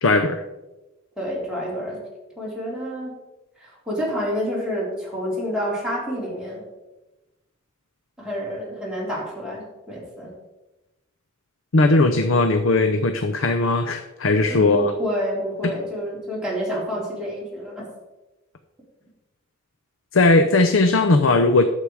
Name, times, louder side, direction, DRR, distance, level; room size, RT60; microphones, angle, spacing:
voice 1, 0.0-0.4 11.7-14.9 15.6-15.7 20.1-21.6, left 2 dB, 75° left, 8 dB, 0.7 m, -18 dB
voice 2, 1.2-2.0 2.4-3.2 3.6-6.6 8.2-10.3 14.5-17.9, equal, 5° right, -6 dB, 3.8 m, -28 dB
11.5 x 7.6 x 4.8 m, 1.0 s
head